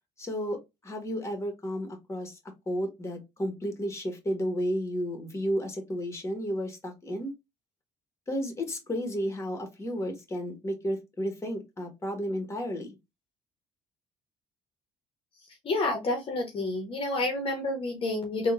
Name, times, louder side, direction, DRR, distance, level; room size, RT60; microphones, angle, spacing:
voice 1, 0.2-2.4 2.7-7.3 8.3-13.0, equal, 20° left, 4 dB, 1.4 m, -32 dB
voice 2, 15.6-18.5, left 2 dB, 45° left, 2 dB, 1.1 m, -29 dB
3.7 x 2.4 x 2.5 m, 0.22 s
supercardioid pair, 80°, 12 cm